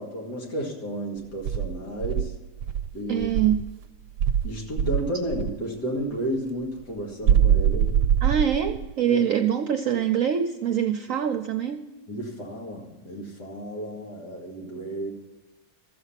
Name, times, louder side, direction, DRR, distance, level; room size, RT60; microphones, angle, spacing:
voice 1, 0.0-2.3 2.9-3.3 4.4-8.1 9.1-9.2 12.1-15.1, right 1 dB, 80° left, -1 dB, 2.8 m, -32 dB
Insect, 1.4-3.7 4.2-5.6 7.2-8.9, right 9 dB, 90° right, 1.2 m, -23 dB
voice 2, 3.1-3.7 8.2-11.9, right 9 dB, 65° right, 6 dB, 1.0 m, -24 dB
14.0 x 7.9 x 5.7 m, 1.2 s
omnidirectional pair, 1.7 m